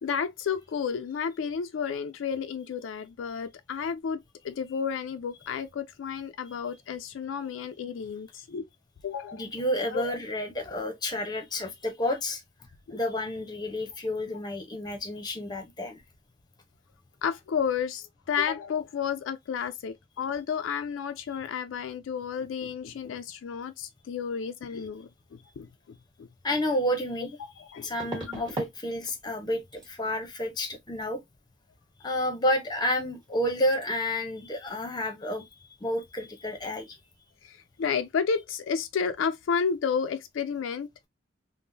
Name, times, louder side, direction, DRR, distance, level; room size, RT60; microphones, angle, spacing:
voice 1, 0.0-8.7 9.0-9.5 9.9-10.2 12.9-13.0 17.2-25.1 25.6-25.7 26.2-26.3 27.4-27.9 28.3-28.4 37.4-41.1, left 6 dB, 75° left, 0.3 m, -31 dB
voice 2, 9.3-12.4 12.9-16.0 26.4-27.4 27.8-31.2 32.0-35.4 35.8-37.0, left 1 dB, 20° left, 0.7 m, -30 dB
sound 1, 26.4-26.5 28.0-28.8 29.1-29.4 29.7-29.9 32.8-33.0 33.2-33.4 33.7-33.8, right 2 dB, 20° right, 1.4 m, -38 dB
3.5 x 2.0 x 2.6 m
head